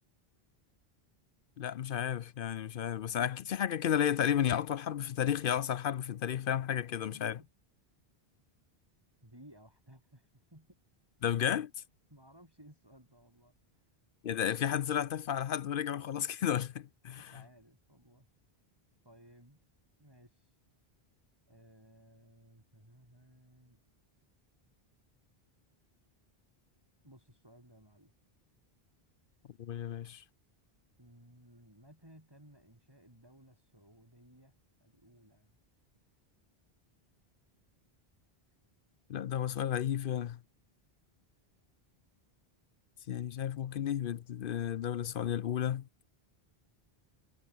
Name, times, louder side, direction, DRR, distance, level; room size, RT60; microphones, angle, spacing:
voice 1, 1.6-7.4 11.2-11.7 14.2-17.3 29.6-30.2 39.1-40.4 43.1-45.9, left 9 dB, 65° left, 0.7 m, -32 dB
voice 2, 9.2-10.8 12.1-13.9 17.1-18.3 19.0-19.6 20.0-20.6 21.5-23.8 27.0-28.1 31.0-35.6, right 1 dB, 25° right, 5.9 m, -59 dB
omnidirectional pair, 1.0 m